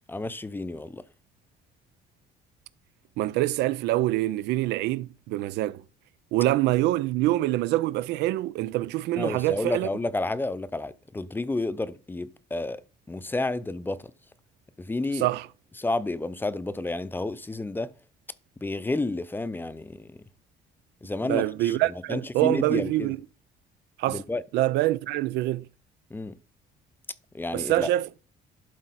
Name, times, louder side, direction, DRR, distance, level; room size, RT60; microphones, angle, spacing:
voice 1, 0.1-1.0 9.2-12.8 13.1-14.0 14.8-15.3 15.8-17.9 18.6-20.2 21.0-23.1 24.1-24.4 26.1-26.3 27.3-27.9, left 2 dB, 10° left, 0.6 m, -31 dB
voice 2, 3.2-5.8 6.3-9.9 15.1-15.5 21.2-23.2 24.0-24.2 24.5-25.7 27.5-28.2, right 16 dB, 85° right, 0.5 m, -25 dB
11.5 x 4.6 x 4.1 m
cardioid pair, 110°, 17 cm